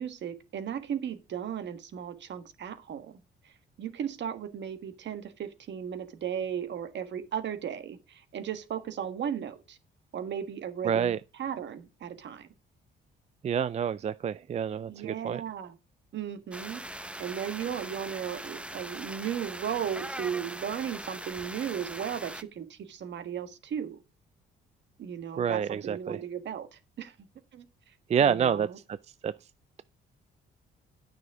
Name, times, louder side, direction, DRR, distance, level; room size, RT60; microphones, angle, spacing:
voice 1, 0.0-3.2 3.4-3.5 3.8-9.8 10.1-12.5 14.9-15.7 16.1-24.0 25.0-27.1 27.5-27.7 28.2-28.8, right 8 dB, 65° right, 1.5 m, -36 dB
voice 2, 10.8-11.2 13.4-15.4 25.4-26.2 28.1-28.7 29.2-29.3, right 7 dB, 35° right, 0.4 m, -27 dB
sound 1, 16.5-22.4, right 1 dB, 5° right, 0.7 m, -41 dB
9.5 x 6.3 x 4.7 m
cardioid pair, 90°, 20 cm